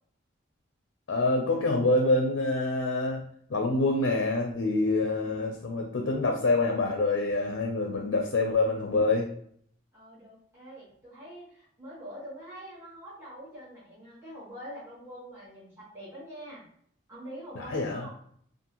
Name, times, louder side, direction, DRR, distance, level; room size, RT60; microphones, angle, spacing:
voice 1, 1.1-3.2 3.5-9.3 17.6-18.1, left 2 dB, 75° left, 1 dB, 0.4 m, -26 dB
voice 2, 9.9-16.6 17.1-18.1, equal, 15° right, -11 dB, 1.1 m, -44 dB
2.6 x 2.5 x 2.9 m, 0.63 s
head